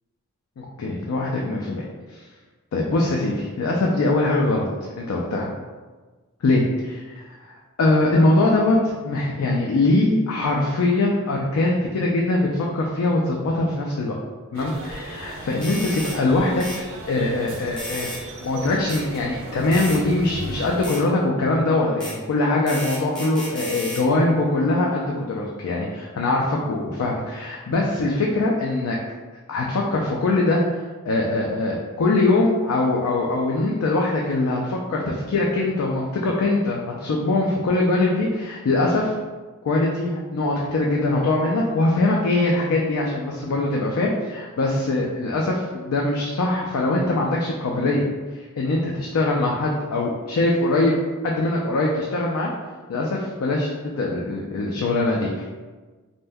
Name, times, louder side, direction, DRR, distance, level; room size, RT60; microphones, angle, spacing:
voice 1, 0.6-1.9 2.1-2.2 2.7-4.7 5.0-5.5 6.4-6.6 7.8-14.2 14.5-16.6 17.1-18.1 18.4-29.0 29.5-30.6 31.1-39.1 39.6-48.0 48.3-50.9 51.2-52.5 52.9-55.5, left 2 dB, 75° left, -2 dB, 0.4 m, -22 dB
sound 1, 14.5-20.9, right 1 dB, 65° right, 0.4 m, -37 dB
sound 2, 15.6-16.2 16.6-16.8 17.8-18.2 18.9-19.0 19.7-20.0 20.8-21.0 22.0-22.2 22.7-24.0, equal, 5° left, 0.8 m, -33 dB
2.6 x 2.2 x 3.4 m, 1.3 s
head